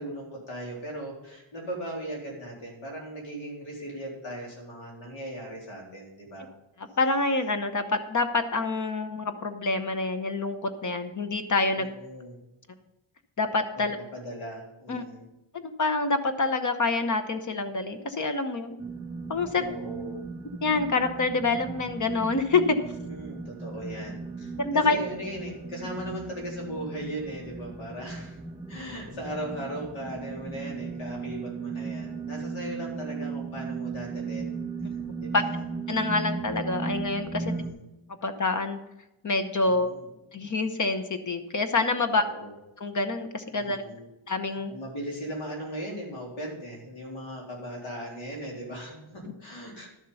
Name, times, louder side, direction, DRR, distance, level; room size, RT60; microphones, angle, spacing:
voice 1, 0.0-6.5 11.7-12.4 13.7-13.8 14.1-15.2 19.6-20.2 22.8-28.4 28.7-34.6 35.2-35.6 36.0-36.1 37.4-37.8 39.6-40.1 42.1-42.5 43.5-44.1 44.7-49.9, right 1 dB, 70° left, -2 dB, 3.8 m, -38 dB
voice 2, 7.0-11.9 13.4-14.0 14.9-15.0 15.8-18.8 19.3-19.6 20.6-22.8 24.6-25.0 35.3-35.4 35.9-37.6 38.2-38.8 39.2-39.9 40.3-42.3 42.8-43.8 44.3-44.7, left 3 dB, 40° left, 9 dB, 0.8 m, -26 dB
sound 1, 18.8-37.7, right 4 dB, 10° right, 1.8 m, -36 dB
12.0 x 7.3 x 5.5 m, 0.94 s
wide cardioid pair, 180°, 49 cm